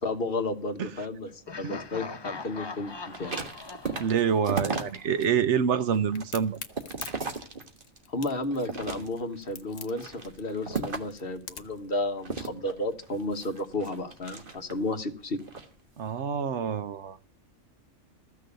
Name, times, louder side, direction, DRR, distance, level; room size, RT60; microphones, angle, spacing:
voice 1, 0.0-2.9 3.2-3.3 8.1-15.4, left 2 dB, 50° left, 7 dB, 1.4 m, -32 dB
Laughter, 1.5-5.3, left 4 dB, 30° left, 0.5 m, -42 dB
sound 1, 3.0-5.3 5.7-8.0 8.5-9.4 9.9-11.2 12.2-14.9 15.4-15.7, right 4 dB, 45° right, 1.5 m, -36 dB
voice 2, 4.0-6.6 16.0-17.3, right 7 dB, 65° right, 13 dB, 1.0 m, -27 dB
Crack, 6.1-11.8, left 7 dB, 75° left, 1.4 m, -44 dB
14.5 x 6.5 x 6.7 m, 0.43 s
omnidirectional pair, 1.3 m